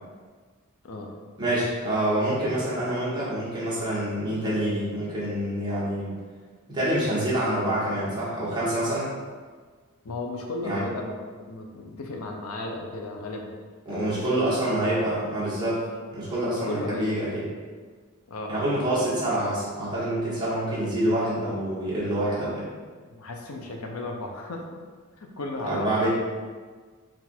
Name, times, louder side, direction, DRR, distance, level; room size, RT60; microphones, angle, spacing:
voice 1, 1.4-6.1 6.7-9.1 10.6-10.8 13.8-15.8 16.1-17.4 18.5-22.7 25.6-26.1, right 1 dB, 20° right, -9 dB, 1.4 m, -26 dB
voice 2, 10.0-11.1 11.5-13.5 13.9-14.4 14.8-15.0 16.5-17.2 18.3-19.1 23.1-24.8 25.2-25.9, left 2 dB, 75° left, 1 dB, 0.5 m, -35 dB
4.1 x 2.5 x 4.3 m, 1.5 s
head